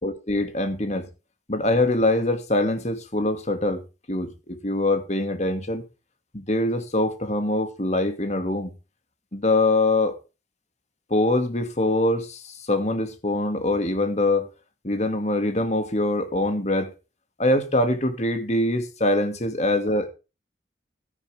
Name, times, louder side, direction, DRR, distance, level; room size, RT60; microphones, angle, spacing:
voice 1, 0.0-1.1 1.5-3.8 4.1-5.8 6.3-8.7 9.3-10.1 11.1-14.5 14.8-16.9 17.4-20.1, left 2 dB, 40° left, 2.3 m, -23 dB
13.0 x 10.5 x 3.6 m
head